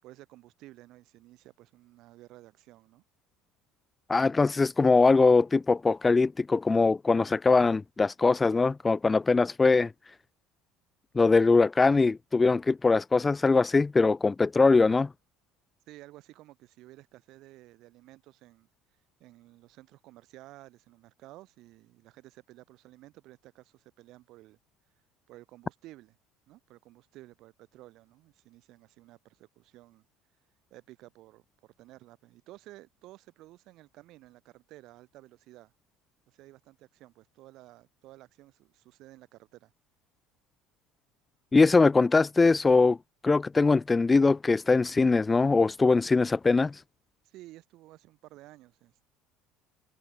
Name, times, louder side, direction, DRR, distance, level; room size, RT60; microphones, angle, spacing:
voice 1, 0.0-3.0 15.9-18.7 19.2-24.6 25.3-26.2 26.5-30.1 30.7-35.7 36.3-39.7 47.2-49.1, right 17 dB, 50° right, 5.6 m, -53 dB
voice 2, 4.1-9.9 11.2-15.1 41.5-43.0 43.2-46.8, left 3 dB, 10° left, 0.3 m, -22 dB
cardioid pair, 175°, 0 cm